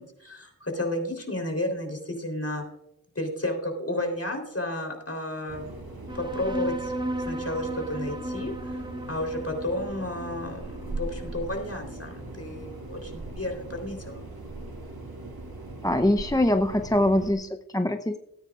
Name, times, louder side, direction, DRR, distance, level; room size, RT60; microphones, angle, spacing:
voice 1, 0.0-2.6 3.2-5.7 6.1-8.5 9.1-14.2, left 1 dB, 40° left, 3 dB, 3.5 m, -32 dB
sound 1, 5.5-17.3, right 2 dB, 85° right, 2.0 m, -40 dB
sound 2, 6.1-13.0, right 1 dB, 15° right, 1.0 m, -36 dB
voice 2, 15.8-18.2, left 1 dB, 10° left, 7 dB, 0.6 m, -23 dB
18.0 x 9.5 x 2.4 m, 0.80 s
wide cardioid pair, 45°, 36 cm